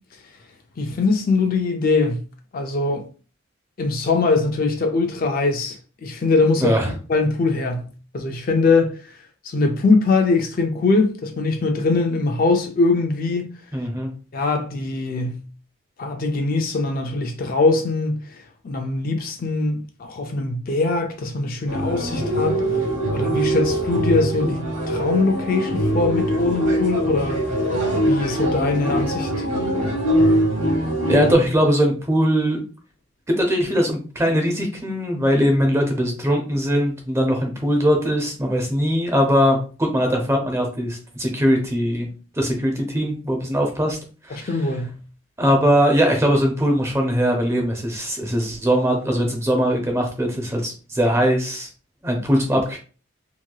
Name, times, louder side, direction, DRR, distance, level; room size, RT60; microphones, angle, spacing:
voice 1, 0.8-2.2 2.5-3.0 3.8-6.7 7.1-7.9 8.1-9.1 9.4-13.5 14.3-15.4 16.0-22.6 23.1-27.5 28.0-29.5 44.3-45.0, left 3 dB, 45° left, 0.4 m, -22 dB
voice 2, 6.6-6.9 13.7-14.1 31.0-32.6 33.3-42.1 42.4-44.0 44.3-44.5 45.4-51.7 52.0-52.8, equal, 15° right, 0.6 m, -20 dB
sound 1, 21.7-31.3, right 1 dB, 60° right, 1.0 m, -22 dB
2.9 x 2.7 x 2.2 m
head